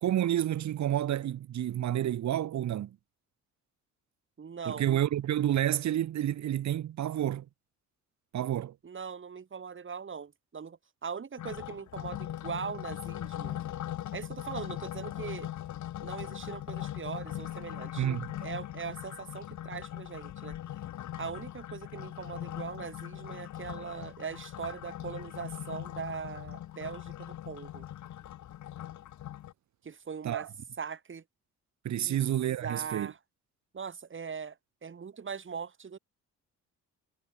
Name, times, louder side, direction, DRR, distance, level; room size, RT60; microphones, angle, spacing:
voice 1, 0.0-3.0 4.7-7.5 8.3-8.7 18.0-18.3 30.2-30.5 31.8-33.1, right 11 dB, 65° right, 1.9 m, -29 dB
voice 2, 4.4-4.9 8.8-13.6 14.1-15.5 16.0-18.1 18.4-20.6 21.2-27.8 29.8-30.5 30.8-31.2 32.0-32.2 32.6-33.2 33.7-34.6 34.8-36.0, right 6 dB, 40° right, 6.6 m, -40 dB
sound 1, 11.4-29.5, left 12 dB, 70° left, 1.8 m, -40 dB
cardioid pair, 90°, 30 cm